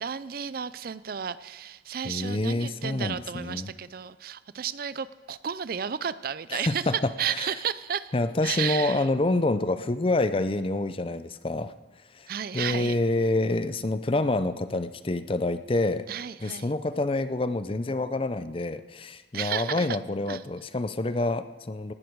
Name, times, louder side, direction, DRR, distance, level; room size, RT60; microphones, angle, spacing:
voice 1, 0.0-8.1 8.4-9.1 12.3-13.0 16.1-16.7 19.3-20.0 20.3-20.4, right 8 dB, 50° right, 16 dB, 0.4 m, -33 dB
voice 2, 2.0-3.7 6.5-6.9 7.3-7.5 8.1-11.7 12.1-12.3 12.5-16.1 16.4-21.9, left 2 dB, 30° left, 12 dB, 0.5 m, -27 dB
18.5 x 11.5 x 4.7 m, 1.3 s
head